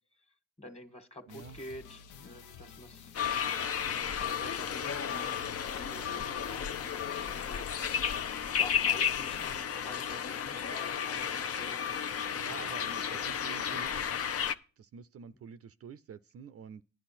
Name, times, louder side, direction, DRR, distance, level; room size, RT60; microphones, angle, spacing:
voice 1, 0.6-3.8 4.2-7.7 8.5-11.9 12.6-14.0, left 1 dB, 20° left, 1.6 m, -49 dB
sound 1, 1.3-9.6, left 6 dB, 85° left, 0.8 m, -51 dB
voice 2, 1.3-1.6 12.3-14.1 14.8-16.8, right 7 dB, 50° right, 0.5 m, -48 dB
sound 2, 3.1-14.5, left 8 dB, 50° left, 0.7 m, -33 dB
11.0 x 9.8 x 4.3 m
cardioid pair, 90°, 30 cm